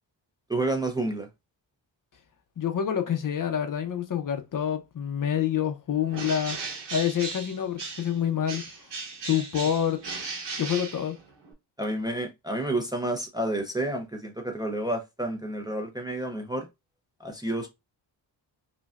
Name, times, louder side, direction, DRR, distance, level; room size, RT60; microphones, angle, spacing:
voice 1, 0.5-1.3 11.8-16.7 17.2-17.7, right 1 dB, 10° right, 0.5 m, -30 dB
voice 2, 2.6-6.6 6.9-8.6 9.2-10.0 10.6-11.2, left 9 dB, 45° left, 0.6 m, -27 dB
Bird, 6.1-8.2 8.5-11.5, right 4 dB, 70° right, 1.3 m, -37 dB
5.1 x 2.2 x 2.3 m
wide cardioid pair, 155°, 44 cm